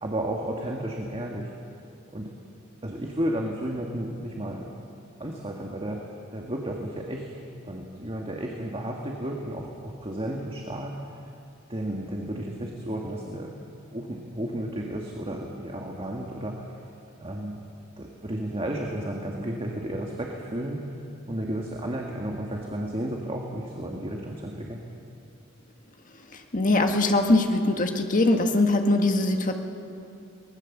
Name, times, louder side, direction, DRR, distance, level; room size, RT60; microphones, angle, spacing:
voice 1, 0.0-1.5 2.1-2.3 2.8-4.7 5.2-6.1 6.3-7.3 7.6-10.9 11.7-13.6 13.9-16.6 17.2-17.6 18.0-20.8 21.3-24.8, right 1 dB, 25° right, 0 dB, 1.7 m, -32 dB
voice 2, 26.5-29.5, left 2 dB, 40° left, 4 dB, 1.7 m, -22 dB
23.0 x 19.5 x 7.2 m, 2.6 s
head